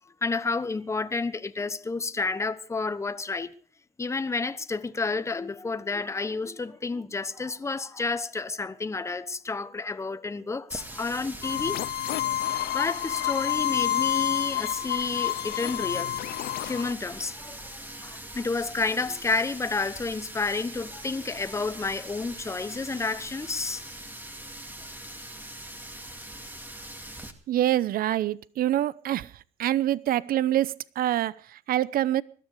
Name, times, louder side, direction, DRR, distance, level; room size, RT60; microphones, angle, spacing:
voice 1, 0.2-3.5 4.0-11.8 12.2-12.3 12.7-16.1 16.6-17.7 18.0-23.8, left 3 dB, 15° left, 1.1 m, -30 dB
Water tap faucet, 10.7-27.3, right 1 dB, 10° right, 2.3 m, -42 dB
sound 1, 11.4-16.9, left 13 dB, 65° left, 0.7 m, -29 dB
voice 2, 27.5-29.3 29.6-32.2, right 13 dB, 60° right, 0.8 m, -25 dB
20.5 x 13.0 x 4.9 m
cardioid pair, 110°, 17 cm